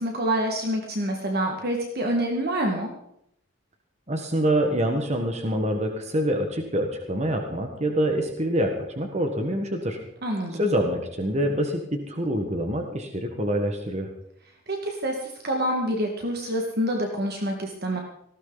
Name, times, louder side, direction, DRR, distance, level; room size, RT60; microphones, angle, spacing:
voice 1, 0.0-2.9 10.2-10.7 14.7-18.0, right 1 dB, 50° right, 1 dB, 2.0 m, -27 dB
voice 2, 4.1-10.0 10.6-14.1, equal, 35° right, 4 dB, 1.5 m, -26 dB
18.5 x 16.0 x 4.1 m, 0.74 s
head